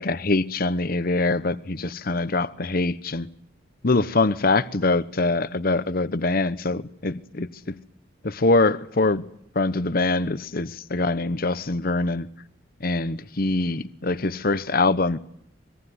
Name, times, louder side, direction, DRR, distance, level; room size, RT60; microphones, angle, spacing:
voice 1, 0.0-3.3 3.8-7.7 8.2-9.2 9.5-12.3 12.8-15.2, left 3 dB, 50° left, 1.0 m, -24 dB
25.5 x 22.0 x 9.7 m
head